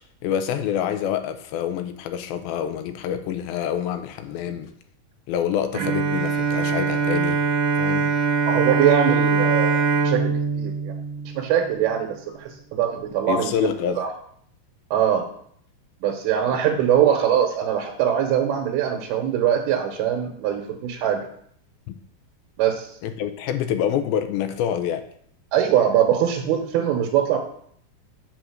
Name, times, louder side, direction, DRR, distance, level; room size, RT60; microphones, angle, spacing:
voice 1, 0.2-4.7 5.3-7.4 7.8-8.1 13.3-14.0 16.6-16.8 21.9-22.0 23.0-25.0, left 9 dB, 80° left, 8 dB, 2.4 m, -26 dB
Bowed string instrument, 5.7-11.9, right 4 dB, 60° right, 1.8 m, -22 dB
voice 2, 8.5-10.9 11.3-13.5 14.0-14.1 14.9-15.3 16.0-21.3 22.6-22.9 25.5-27.4, right 10 dB, 80° right, 2 dB, 2.7 m, -22 dB
7.8 x 3.7 x 6.2 m, 0.64 s
omnidirectional pair, 4.6 m